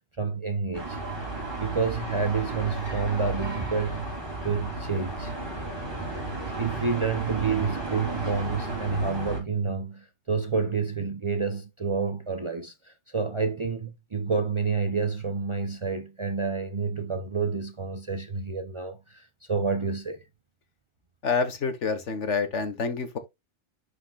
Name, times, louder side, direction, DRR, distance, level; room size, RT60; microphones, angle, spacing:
voice 1, 0.2-1.0 1.6-4.1 4.4-5.4 6.5-20.2, right 5 dB, 40° right, 0.5 m, -29 dB
sound 1, 0.7-9.4, right 2 dB, 20° right, 2.9 m, -34 dB
voice 2, 21.2-23.2, left 5 dB, 85° left, 1.6 m, -27 dB
11.5 x 4.8 x 2.3 m
omnidirectional pair, 1.2 m